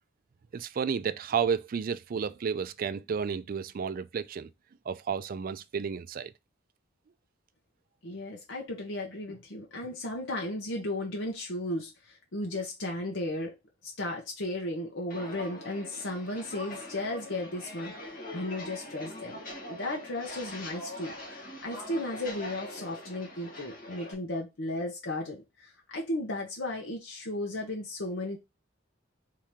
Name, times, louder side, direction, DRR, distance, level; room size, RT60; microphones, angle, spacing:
voice 1, 0.5-4.5 4.9-6.3, right 6 dB, 45° right, 0.3 m, -32 dB
voice 2, 8.0-13.5 13.8-17.9 18.3-28.4, left 1 dB, 75° left, 1.0 m, -35 dB
Walk footsteps, 15.1-24.1, left 1 dB, 45° left, 1.5 m, -43 dB
4.6 x 2.9 x 3.6 m
head